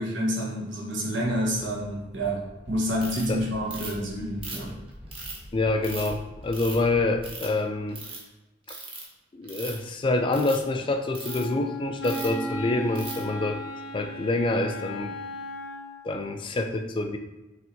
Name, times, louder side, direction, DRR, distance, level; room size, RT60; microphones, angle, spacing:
voice 1, 0.0-4.8, equal, 70° right, -4 dB, 1.2 m, -28 dB
sound 1, 1.2-7.3, equal, 10° right, 1.2 m, -46 dB
Ratchet pawl, 3.0-3.2 3.7-4.0 4.4-5.4 5.8-6.1 6.5-6.8 7.2-7.6 7.9-8.2 8.7-9.0 9.4-9.8 10.3-10.6 11.1-11.4 12.0-12.4 12.9-13.2, right 3 dB, 30° right, 0.9 m, -38 dB
voice 2, 5.5-8.0 8.7-8.8 9.3-13.6 13.9-15.1 16.0-17.2, left 2 dB, 25° left, 6 dB, 0.3 m, -26 dB
Wind instrument woodwind instrument, 11.2-16.1, left 1 dB, 75° left, 0.6 m, -36 dB
5.6 x 3.3 x 2.7 m, 1.1 s
head